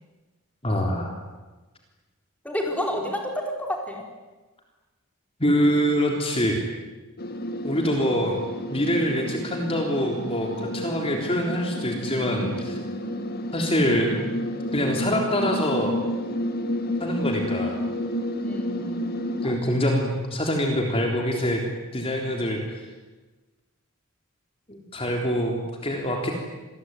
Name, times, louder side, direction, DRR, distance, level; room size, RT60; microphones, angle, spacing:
voice 1, 0.6-1.1 5.4-6.6 7.6-8.4 8.7-12.8 13.5-14.4 14.7-16.0 17.0-17.8 19.4-21.6 21.9-22.6 24.7-26.3, equal, 25° left, 1 dB, 3.6 m, -25 dB
voice 2, 2.4-3.2 3.7-4.0 7.7-8.1 18.4-19.6, left 1 dB, 5° left, 1 dB, 4.3 m, -31 dB
sound 1, 7.2-19.6, left 1 dB, 45° left, 2.1 m, -30 dB
27.5 x 21.0 x 9.6 m, 1.2 s
head